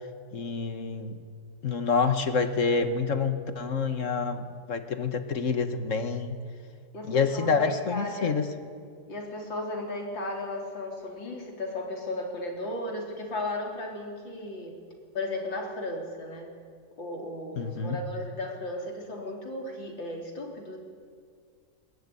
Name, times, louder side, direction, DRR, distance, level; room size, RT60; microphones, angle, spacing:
voice 1, 0.3-1.2 1.6-6.4 7.1-8.5 17.6-18.0, left 5 dB, 45° left, 9 dB, 1.7 m, -27 dB
voice 2, 6.9-8.4 9.1-14.7 15.1-16.5 17.0-20.8, left 1 dB, 90° left, 1 dB, 4.4 m, -35 dB
21.0 x 19.5 x 9.9 m, 2.2 s
omnidirectional pair, 2.0 m